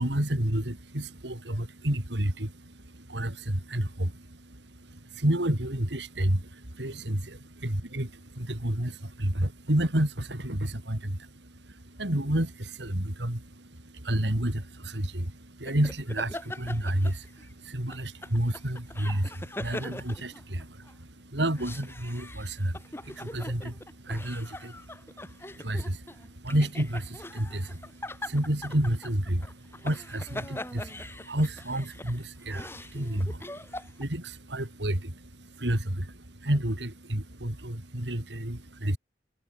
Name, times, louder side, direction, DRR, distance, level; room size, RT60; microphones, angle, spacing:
voice 1, 0.0-39.0, right 1 dB, 85° right, 3.7 m, -31 dB
sound 1, 15.7-17.5 17.9-20.9 21.4-34.0, left 1 dB, 15° left, 5.1 m, -42 dB
head